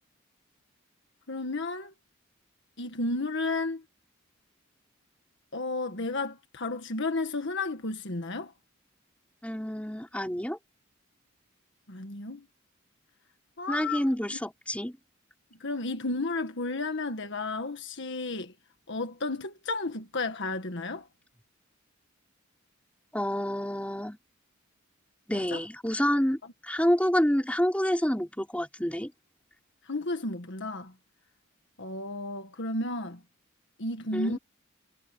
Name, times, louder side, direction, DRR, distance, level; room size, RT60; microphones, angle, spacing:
voice 1, 1.3-1.9 2.8-3.8 5.5-8.5 11.9-12.4 13.6-14.0 15.6-18.5 18.9-21.1 25.3-25.6 29.9-30.9 31.8-33.2 33.8-34.4, left 2 dB, 60° left, 1.7 m, -32 dB
voice 2, 9.4-10.6 13.7-15.0 23.1-24.2 25.3-29.1 34.1-34.4, equal, 5° left, 4.3 m, -28 dB
head